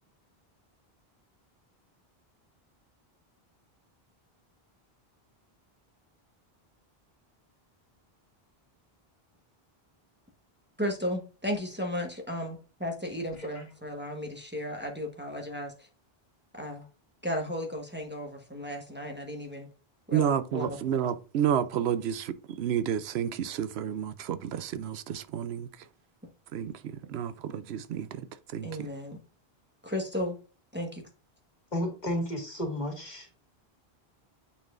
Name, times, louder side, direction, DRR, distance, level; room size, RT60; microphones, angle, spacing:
voice 1, 10.8-15.9 16.5-16.9 17.2-19.7 20.1-21.0 28.6-29.2 29.8-30.4 30.7-31.0, left 1 dB, 10° right, 1.3 m, -34 dB
voice 2, 20.1-25.9 26.5-28.9, right 9 dB, 90° right, 0.9 m, -31 dB
voice 3, 31.7-33.3, left 1 dB, 45° left, 2.4 m, -33 dB
9.2 x 4.3 x 2.5 m
omnidirectional pair, 1.0 m